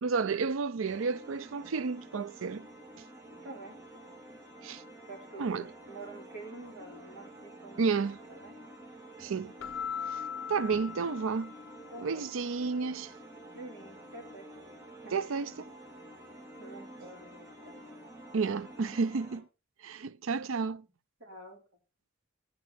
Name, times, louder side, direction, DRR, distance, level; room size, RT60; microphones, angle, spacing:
voice 1, 0.0-2.7 4.6-4.8 5.4-5.7 7.8-8.2 9.2-9.5 10.1-10.2 10.5-11.5 12.0-13.1 15.1-15.7 18.3-19.5 19.8-20.8, right 5 dB, 80° right, 0.5 m, -31 dB
sound 1, 0.8-19.4, right 1 dB, 15° right, 2.5 m, -50 dB
voice 2, 3.4-4.1 5.1-7.9 8.3-8.5 11.9-12.2 13.5-14.5 15.0-15.1 16.6-17.8 21.2-21.6, right 2 dB, 55° right, 4.8 m, -47 dB
Keyboard (musical), 9.6-12.0, left 7 dB, 75° left, 0.4 m, -39 dB
10.0 x 9.4 x 4.4 m
head